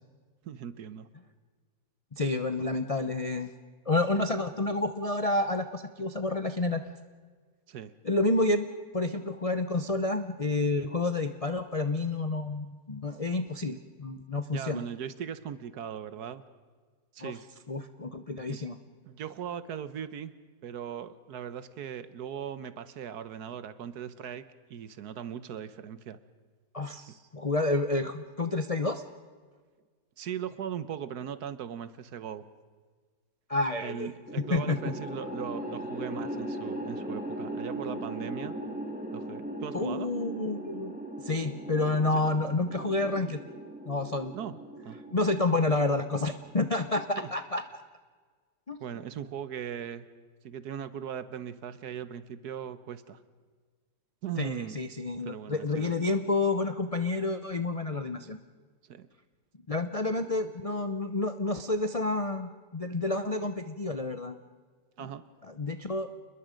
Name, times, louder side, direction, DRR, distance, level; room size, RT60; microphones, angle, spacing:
voice 1, 0.4-1.1 7.7-7.9 14.5-16.4 17.1-17.4 18.5-18.6 19.1-20.3 20.6-24.4 24.7-26.2 30.2-32.4 33.8-38.5 39.1-40.1 44.3-44.5 44.8-45.0 47.1-47.3 48.8-50.1 50.4-53.2 54.2-54.8 55.2-55.9 58.9-59.1 65.0-65.2, right 8 dB, 65° right, 14 dB, 1.3 m, -39 dB
voice 2, 2.1-3.5 3.9-6.8 8.0-8.7 8.9-14.8 17.2-17.3 17.7-18.8 26.7-29.0 33.5-34.1 34.5-34.8 39.7-41.0 41.2-43.4 43.8-44.3 45.1-47.8 48.7-48.8 54.4-58.4 59.7-64.4 65.0-65.1 65.5-66.1, left 2 dB, 40° left, 8 dB, 0.5 m, -29 dB
sound 1, 34.3-46.6, right 1 dB, 5° right, 2.0 m, -39 dB
29.0 x 21.0 x 5.2 m, 1.5 s
omnidirectional pair, 1.9 m